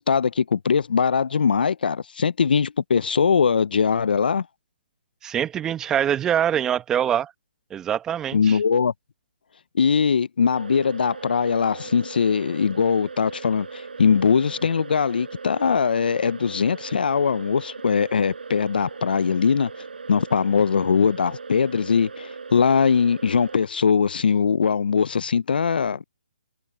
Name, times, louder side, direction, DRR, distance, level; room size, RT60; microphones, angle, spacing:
voice 1, 0.0-4.4 8.3-8.9 9.7-19.7 20.1-26.0, left 6 dB, 70° left, 0.4 m, -21 dB
voice 2, 5.2-7.3 7.7-8.6, right 9 dB, 10° right, 0.9 m, -24 dB
sound 1, 10.5-23.6, right 4 dB, 80° right, 4.4 m, -39 dB
hypercardioid pair, 160°, 5 cm